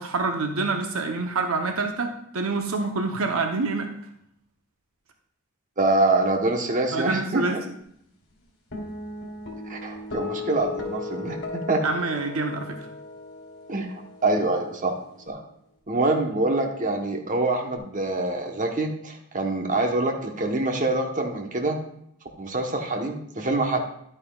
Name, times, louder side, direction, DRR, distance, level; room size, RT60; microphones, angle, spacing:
voice 1, 0.0-3.9 6.9-7.6 11.8-12.8, right 3 dB, 75° right, 5 dB, 0.8 m, -26 dB
voice 2, 5.8-7.5 9.7-11.8 13.7-13.9 14.2-14.9 15.3-15.4 15.9-21.8 22.4-23.8, right 2 dB, 40° right, 3 dB, 1.0 m, -25 dB
sound 1, 8.7-15.3, left 3 dB, 60° left, 3.2 m, -37 dB
11.5 x 8.8 x 2.3 m, 0.72 s
head